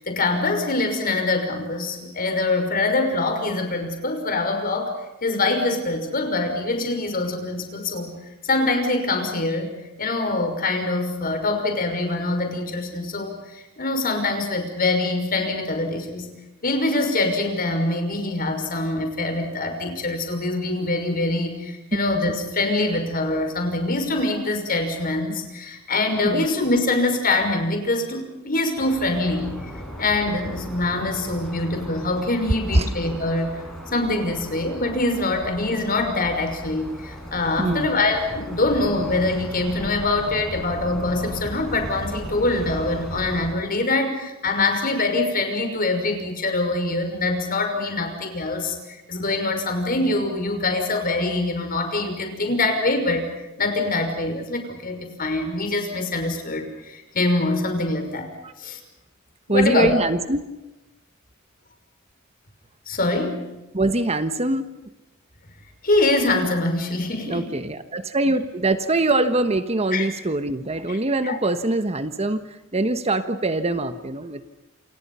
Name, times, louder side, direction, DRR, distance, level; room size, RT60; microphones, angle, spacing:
voice 1, 0.0-8.2 8.4-9.7 10.0-16.3 16.6-29.5 29.7-33.6 33.9-53.3 53.6-58.3 58.6-58.8 59.5-59.9 62.9-63.4 65.8-67.5 69.9-70.1 70.9-71.0 71.2-71.4, left 2 dB, 45° left, 5 dB, 5.9 m, -24 dB
sound 1, 28.8-43.5, equal, ahead, 7.7 m, -37 dB
voice 2, 37.6-37.9 58.4-58.5 59.5-60.5 63.7-64.7 67.3-72.4 72.7-74.5, right 2 dB, 30° right, 10 dB, 1.3 m, -23 dB
28.5 x 28.0 x 5.7 m, 0.97 s
head